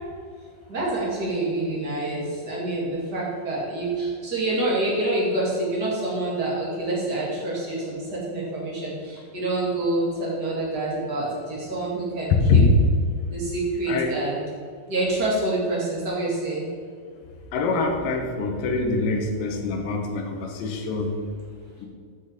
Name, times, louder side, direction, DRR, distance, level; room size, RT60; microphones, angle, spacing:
voice 1, 0.7-12.6 13.3-14.4 14.8-16.7, right 2 dB, 35° right, -5 dB, 1.9 m, -27 dB
voice 2, 17.5-21.2 21.8-21.9, left 4 dB, 70° left, 2 dB, 2.6 m, -24 dB
8.1 x 6.2 x 5.2 m, 2.1 s
omnidirectional pair, 4.5 m